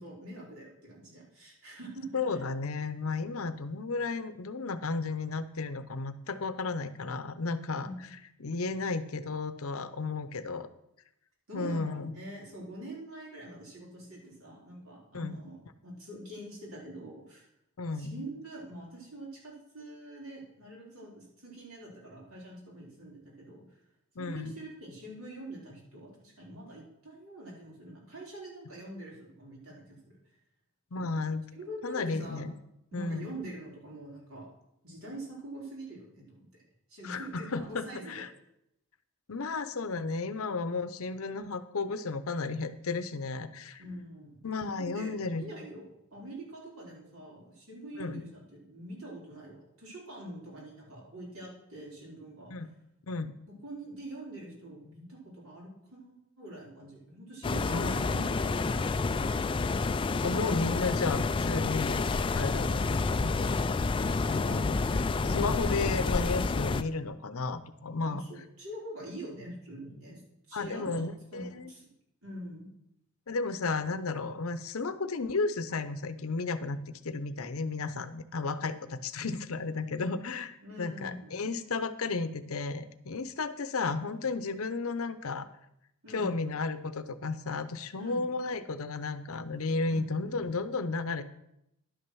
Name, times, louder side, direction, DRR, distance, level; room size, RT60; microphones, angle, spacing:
voice 1, 0.0-2.4 7.8-7.9 11.5-17.5 17.9-23.6 24.2-30.1 30.9-31.2 31.5-32.4 32.9-34.5 34.8-36.6 36.9-38.2 43.8-44.5 44.8-52.5 53.5-59.5 68.0-70.2 70.5-71.0 71.3-71.9 72.2-72.7 80.6-81.3 86.0-86.3 88.0-88.3 89.8-90.0, right 1 dB, 65° right, -3 dB, 4.2 m, -45 dB
voice 2, 2.1-7.9 8.4-10.7 11.5-12.1 15.1-15.4 17.8-18.2 24.2-24.5 30.9-31.4 31.8-32.6 32.9-33.3 37.0-38.3 39.3-43.8 44.4-45.4 48.0-48.2 52.5-52.7 53.1-53.3 57.7-58.6 60.2-62.0 62.3-63.5 64.3-65.0 65.3-68.2 70.5-71.7 73.3-85.5 86.1-91.2, left 3 dB, 70° left, 12 dB, 0.7 m, -33 dB
sound 1, 57.4-66.8, left 3 dB, 20° left, 0.3 m, -29 dB
11.5 x 6.4 x 6.1 m, 0.81 s
head